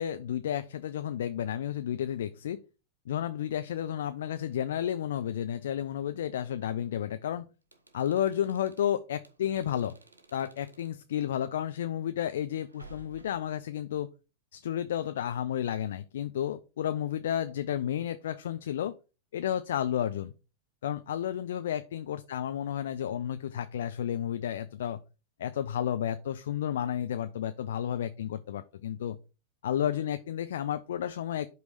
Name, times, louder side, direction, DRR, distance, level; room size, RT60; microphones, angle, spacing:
voice 1, 0.0-2.6 3.1-7.5 7.9-9.9 10.3-14.1 14.5-18.9 19.3-20.3 20.8-25.0 25.4-29.2 29.6-31.5, left 10 dB, 60° left, 10 dB, 0.4 m, -32 dB
sound 1, 7.6-11.0 12.5-13.6, right 1 dB, 80° right, 1.0 m, -55 dB
8.1 x 3.1 x 4.9 m, 0.31 s
figure-of-eight pair, 90°, 0 cm